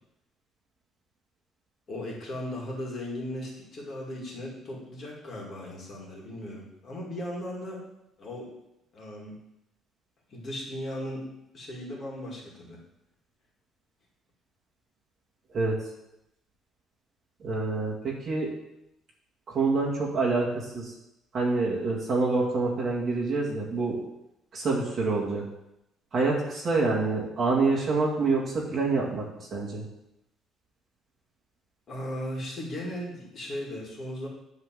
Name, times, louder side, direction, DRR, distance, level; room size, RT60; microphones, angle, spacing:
voice 1, 1.9-7.8 8.2-8.5 8.9-9.4 10.3-11.3 11.5-12.8 31.9-34.3, left 1 dB, 35° left, -2 dB, 2.2 m, -37 dB
voice 2, 17.4-18.5 19.5-20.9 21.3-24.0 24.5-25.4 26.1-29.2 29.5-29.8, right 3 dB, 30° right, -4 dB, 2.1 m, -26 dB
10.5 x 3.8 x 7.5 m, 0.87 s
cardioid pair, 175°, 0 cm